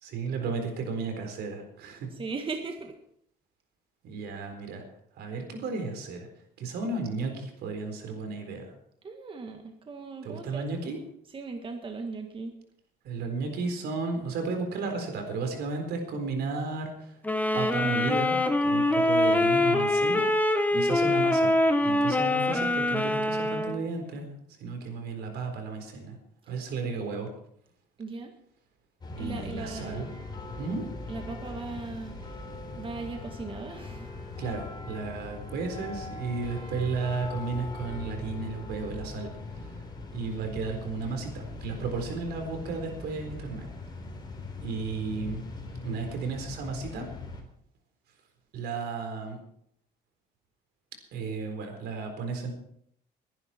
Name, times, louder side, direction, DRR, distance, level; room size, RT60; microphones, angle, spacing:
voice 1, 0.0-2.1 4.0-4.8 5.2-6.3 6.6-8.7 10.2-11.0 13.0-17.2 17.5-20.2 20.7-24.3 24.6-26.2 26.5-27.3 29.2-30.1 30.6-30.9 34.4-39.3 39.6-39.7 40.1-43.7 44.6-45.5 45.8-47.1 48.5-49.4 51.1-52.5, right 4 dB, 75° right, 5 dB, 4.1 m, -33 dB
voice 2, 2.1-2.9 9.0-10.7 11.3-12.5 20.7-21.1 26.5-26.6 28.0-28.3 29.2-30.1 31.1-32.5 32.7-34.1, right 4 dB, 30° right, 4 dB, 1.7 m, -38 dB
sound 1, 17.2-23.8, left 1 dB, 10° left, 1.5 m, -24 dB
sound 2, 29.0-47.4, left 3 dB, 25° left, 3.7 m, -40 dB
21.5 x 11.0 x 4.5 m, 0.69 s
cardioid pair, 110°, 17 cm